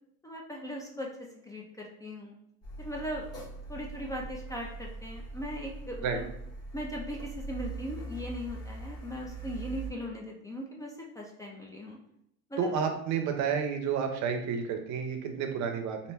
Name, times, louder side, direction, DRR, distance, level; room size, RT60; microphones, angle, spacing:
voice 1, 0.2-2.3 2.8-3.2 3.7-6.3 6.7-12.0 12.5-12.7 14.2-14.3, equal, 10° left, -2 dB, 0.3 m, -39 dB
Car, 2.6-9.9, right 3 dB, 45° left, 1.1 m, -41 dB
voice 2, 12.6-16.0, right 6 dB, 55° right, 5 dB, 0.6 m, -30 dB
2.6 x 2.1 x 3.3 m, 0.76 s
supercardioid pair, 105°, 34 cm